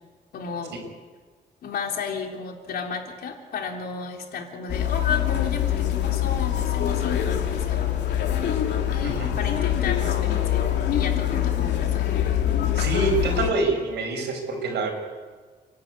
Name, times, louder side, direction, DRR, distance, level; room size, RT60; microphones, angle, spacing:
voice 1, 0.3-0.8 1.6-7.9 8.9-10.6 10.9-12.1, left 5 dB, 65° left, 2 dB, 3.7 m, -33 dB
sound 1, 4.7-13.5, left 11 dB, 90° left, 2.7 m, -24 dB
voice 2, 9.0-9.3 12.7-14.9, right 3 dB, 85° right, 3 dB, 6.5 m, -26 dB
29.5 x 12.5 x 9.6 m, 1.4 s
wide cardioid pair, 175°, 17 cm